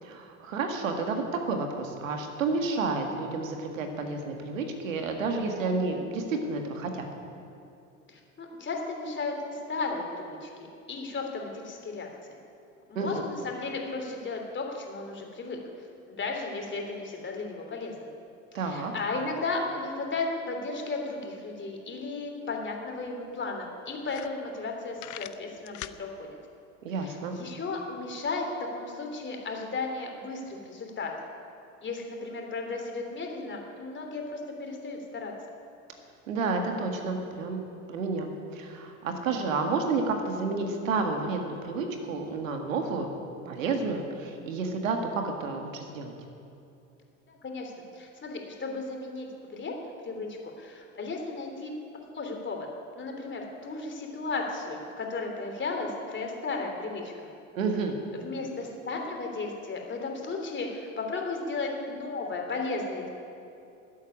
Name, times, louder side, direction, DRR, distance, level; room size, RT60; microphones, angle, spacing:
voice 1, 0.0-7.1 13.0-13.2 18.5-18.9 26.8-27.4 36.3-43.1 43.5-46.1 57.6-58.0, right 4 dB, 90° right, 4 dB, 1.8 m, -30 dB
voice 2, 8.1-12.4 12.9-15.6 16.1-18.1 18.5-26.3 27.0-31.1 31.8-35.3 47.3-49.7 50.0-51.7 52.1-52.7 53.0-57.1 58.1-63.1, left 3 dB, 30° left, 2 dB, 3.2 m, -35 dB
sound 1, 22.6-22.7 23.0-23.1 23.6-23.7 24.0-24.7 25.0-26.0, left 16 dB, 50° left, 0.7 m, -41 dB
13.0 x 8.5 x 9.8 m, 2.7 s
hypercardioid pair, 85°, 38 cm